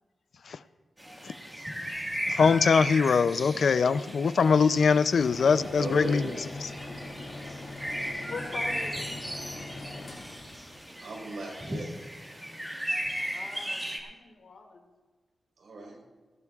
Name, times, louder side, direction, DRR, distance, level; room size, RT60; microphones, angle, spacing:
sound 1, 1.0-14.0, equal, 10° right, 1.7 m, -36 dB
voice 1, 2.3-6.2 6.6-6.7, left 5 dB, 65° left, 13 dB, 0.4 m, -22 dB
voice 2, 3.8-4.3 6.8-7.0 8.2-9.5 13.2-14.9, left 4 dB, 85° left, 3 dB, 2.3 m, -44 dB
sound 2, 5.2-12.1, left 2 dB, 45° left, 2.3 m, -42 dB
voice 3, 5.8-6.5 11.0-11.9 15.6-16.0, right 2 dB, 85° right, -1 dB, 4.3 m, -37 dB
19.0 x 15.5 x 2.4 m, 1.3 s
wide cardioid pair, 175°, 0 cm